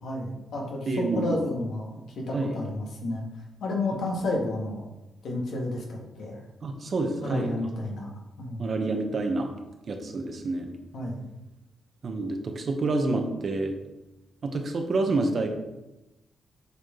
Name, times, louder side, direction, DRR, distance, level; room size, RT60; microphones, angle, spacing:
voice 1, 0.0-3.2 3.6-4.8 5.2-6.4 7.2-8.1 8.4-8.6 10.9-11.2, left 2 dB, 75° left, -1 dB, 1.6 m, -31 dB
voice 2, 0.9-1.4 2.3-2.6 6.6-7.5 8.6-9.5 9.9-10.7 12.0-13.7 14.4-15.5, right 2 dB, 50° right, 4 dB, 1.0 m, -28 dB
8.1 x 3.7 x 3.7 m, 0.98 s
cardioid pair, 80°, 0 cm